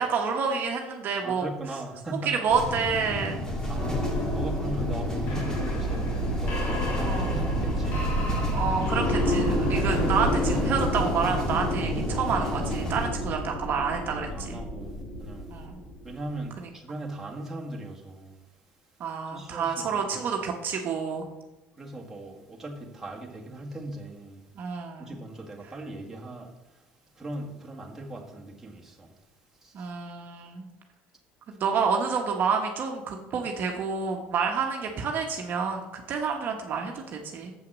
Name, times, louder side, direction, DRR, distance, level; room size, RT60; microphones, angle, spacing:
voice 1, 0.0-1.5 2.2-3.4 7.0-7.3 8.5-14.6 15.5-15.8 16.6-16.7 19.0-21.2 24.5-25.2 29.7-30.6 31.5-37.5, right 6 dB, 50° right, 2 dB, 1.1 m, -29 dB
voice 2, 1.2-2.4 3.7-8.1 13.3-13.4 14.1-15.5 16.0-18.4 19.3-20.2 21.8-24.4 25.0-26.5 27.2-29.1 29.6-29.9, right 1 dB, 10° right, -2 dB, 1.8 m, -39 dB
sound 1, 2.5-13.1, left 1 dB, 15° left, 2.0 m, -32 dB
sound 2, 3.4-16.1, equal, 55° left, 2.9 m, -29 dB
7.4 x 5.8 x 6.2 m, 1.0 s
supercardioid pair, 110°, 4 cm